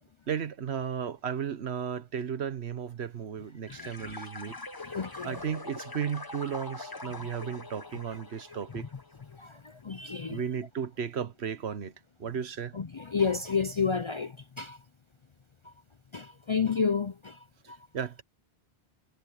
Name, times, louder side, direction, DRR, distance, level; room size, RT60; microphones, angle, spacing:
voice 1, 0.3-4.6 5.2-8.9 10.3-11.9 12.2-12.8 17.6-18.2, right 8 dB, 85° right, 1.3 m, -34 dB
voice 2, 3.7-4.3 4.9-5.3 9.3-10.4 12.7-14.8 15.6-15.7 16.1-17.8, left 5 dB, 40° left, 0.4 m, -31 dB
sound 1, 3.7-9.4, left 3 dB, 20° left, 1.0 m, -43 dB
omnidirectional pair, 1.1 m